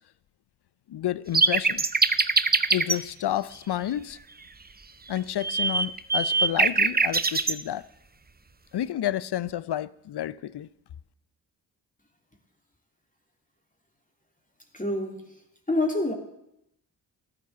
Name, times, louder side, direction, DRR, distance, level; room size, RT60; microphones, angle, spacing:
voice 1, 0.9-1.8 2.7-4.2 5.1-7.8 8.7-10.7, left 12 dB, 55° left, 0.7 m, -30 dB
sound 1, 1.3-3.0 5.2-7.6, right 4 dB, 20° right, 0.9 m, -22 dB
voice 2, 14.7-15.2 15.7-16.1, left 2 dB, 15° left, 3.1 m, -26 dB
14.0 x 11.0 x 6.9 m
hypercardioid pair, 40°, 49 cm